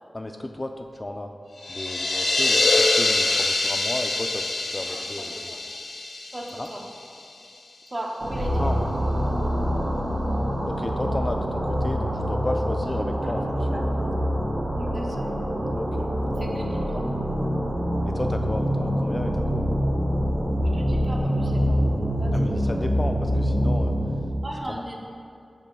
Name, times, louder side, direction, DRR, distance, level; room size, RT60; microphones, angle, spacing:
voice 1, 0.1-1.3 1.7-5.6 6.6-6.7 8.6-8.8 10.7-13.4 13.7-13.8 15.0-15.2 15.7-16.1 18.1-19.7 22.3-23.9 24.7-24.8, left 1 dB, 30° left, 5 dB, 0.3 m, -33 dB
sound 1, 1.6-7.2, left 2 dB, 80° left, 0.6 m, -24 dB
voice 2, 4.8-5.6 6.3-6.8 7.9-8.8 13.2-13.3 13.7-13.8 14.8-15.4 16.4-17.1 20.7-21.8 22.1-22.8 24.4-25.0, right 1 dB, 30° right, 0 dB, 0.8 m, -37 dB
sound 2, 8.2-24.4, equal, 65° right, 1.1 m, -25 dB
6.0 x 3.5 x 5.4 m, 2.4 s
wide cardioid pair, 70°, 0 cm